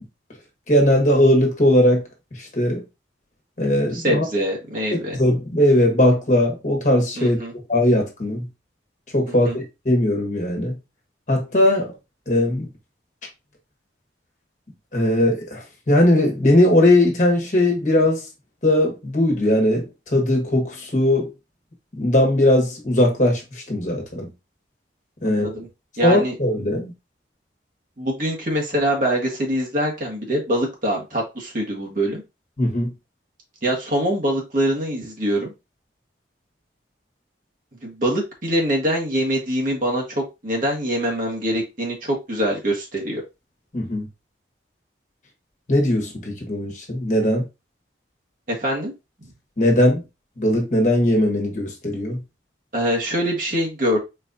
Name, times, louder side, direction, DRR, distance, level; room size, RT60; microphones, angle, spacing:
voice 1, 0.7-2.1 2.4-2.8 3.6-4.2 5.1-7.4 7.7-8.4 9.1-10.7 11.3-11.9 12.3-12.7 14.9-18.2 18.6-21.3 22.0-24.3 25.2-25.5 26.0-26.9 32.6-32.9 43.7-44.1 45.7-47.4 49.6-50.0 50.4-52.2, left 1 dB, 40° left, 1.5 m, -19 dB
voice 2, 3.9-5.2 7.2-7.5 9.4-9.6 25.2-25.7 26.0-26.4 28.0-32.2 33.6-35.5 37.8-43.2 48.5-48.9 52.7-54.0, equal, 45° right, 1.5 m, -24 dB
4.5 x 4.2 x 2.6 m
head